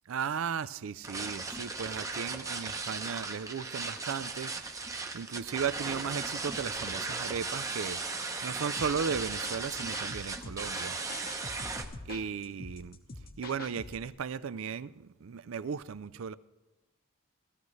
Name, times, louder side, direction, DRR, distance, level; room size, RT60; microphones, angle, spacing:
voice 1, 0.1-4.9 5.1-11.0 11.3-11.5 12.1-13.0 13.4-16.3, right 6 dB, 70° right, 0.4 m, -36 dB
sound 1, 1.0-11.8, right 3 dB, 15° right, 0.7 m, -37 dB
sound 2, 8.8-14.1, left 2 dB, 45° left, 1.0 m, -45 dB
17.0 x 13.5 x 3.2 m
head